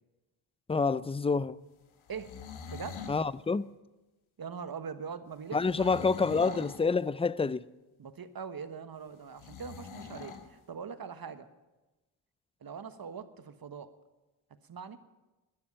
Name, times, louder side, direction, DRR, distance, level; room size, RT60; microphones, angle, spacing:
voice 1, 0.7-1.6 3.1-3.7 5.5-7.6, left 4 dB, 10° left, 0.4 m, -28 dB
sound 1, 2.0-3.2 5.6-6.9 9.4-10.5, left 6 dB, 70° left, 1.7 m, -44 dB
voice 2, 2.7-3.0 4.4-6.7 8.0-11.5 12.6-13.9 14.6-15.0, right 6 dB, 45° right, 1.3 m, -42 dB
12.5 x 10.5 x 8.9 m
supercardioid pair, 50°, 50 cm